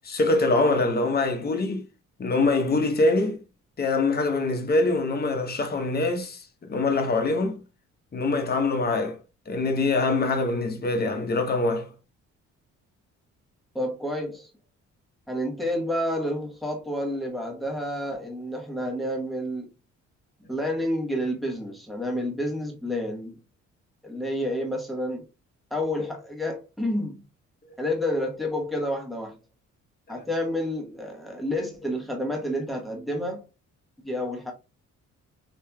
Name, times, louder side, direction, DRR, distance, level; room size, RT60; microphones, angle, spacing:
voice 1, 0.0-1.8 2.2-3.4 3.8-7.6 8.1-9.2 9.5-11.9, left 3 dB, 30° left, 0.9 m, -24 dB
voice 2, 13.7-14.5 15.3-19.7 20.4-23.4 24.0-25.3 25.7-27.2 27.8-29.4 30.1-33.5 34.0-34.5, left 1 dB, ahead, 1.0 m, -29 dB
3.0 x 2.9 x 2.3 m
cardioid pair, 90°, 30 cm